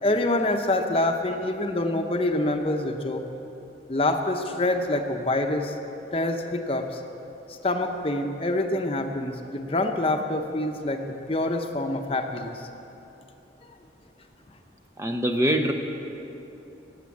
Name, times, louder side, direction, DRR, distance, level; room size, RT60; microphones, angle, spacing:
voice 1, 0.0-3.2 3.9-5.8 6.1-7.0 7.5-12.6, left 2 dB, 30° left, 5 dB, 0.8 m, -26 dB
voice 2, 15.0-15.7, right 1 dB, 15° right, 4 dB, 0.7 m, -23 dB
18.0 x 8.2 x 8.5 m, 3.0 s
head